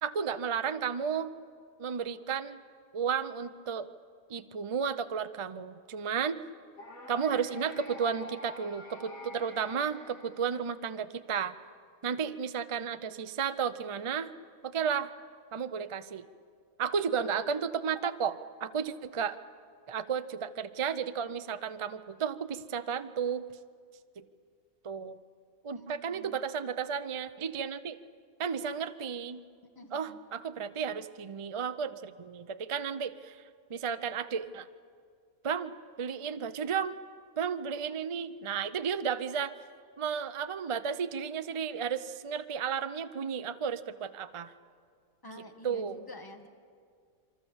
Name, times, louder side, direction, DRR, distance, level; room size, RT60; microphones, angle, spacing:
voice 1, 0.0-1.3 1.8-2.6 2.9-3.9 4.3-6.4 7.1-11.5 12.0-14.3 14.6-15.1 15.5-16.3 16.8-19.4 19.9-23.5 24.2-24.3 24.8-25.2 25.6-28.0 28.4-29.4 29.9-33.4 33.7-34.7 35.4-35.7 36.0-37.0 37.4-39.5 40.0-44.5 45.6-46.1, right 7 dB, 45° right, 11 dB, 0.4 m, -33 dB
sound 1, 6.8-10.9, left 2 dB, 85° left, 2.7 m, -48 dB
voice 2, 25.7-26.4 29.7-30.2 45.2-46.5, left 1 dB, 15° left, 5 dB, 1.5 m, -49 dB
27.0 x 24.0 x 7.2 m, 2.1 s
omnidirectional pair, 1.4 m